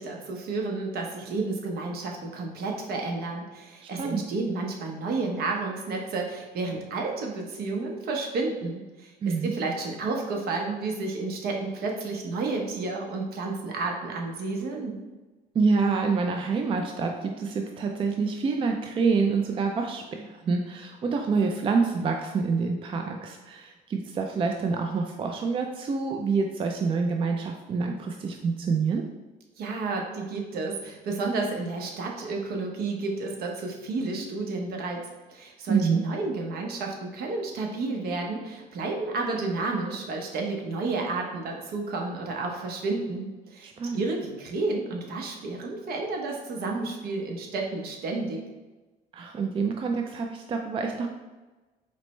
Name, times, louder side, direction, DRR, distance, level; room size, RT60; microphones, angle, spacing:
voice 1, 0.0-14.9 29.6-48.4, right 3 dB, 65° right, 1 dB, 0.9 m, -31 dB
voice 2, 9.2-9.5 15.5-29.0 35.7-36.0 43.6-44.0 49.1-51.1, right 4 dB, 30° right, 3 dB, 0.4 m, -27 dB
4.2 x 3.0 x 3.1 m, 1.2 s
cardioid pair, 110°, 17 cm